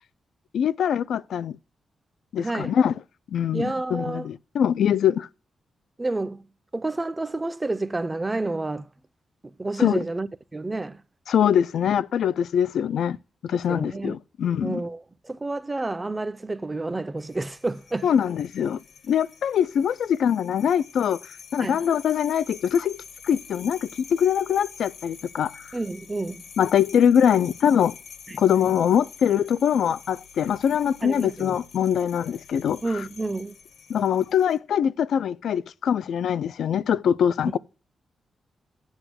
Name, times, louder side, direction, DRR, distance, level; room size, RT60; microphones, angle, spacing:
voice 1, 0.5-1.6 2.3-2.9 3.3-5.3 9.8-10.0 11.3-13.2 13.4-14.8 18.0-18.8 19.1-21.2 21.5-25.5 26.6-27.9 28.3-32.8 33.9-37.6, left 8 dB, 75° left, 0.4 m, -23 dB
voice 2, 2.4-2.8 3.5-4.3 6.0-6.5 6.7-8.9 9.4-11.0 13.7-14.2 14.6-18.1 21.6-21.8 25.7-26.4 28.3-28.4 31.0-31.6 32.8-33.6 37.4-37.6, right 2 dB, 15° right, 0.4 m, -30 dB
sound 1, 17.2-34.6, left 6 dB, 60° left, 0.9 m, -47 dB
8.0 x 6.0 x 6.2 m
wide cardioid pair, 170°, 0 cm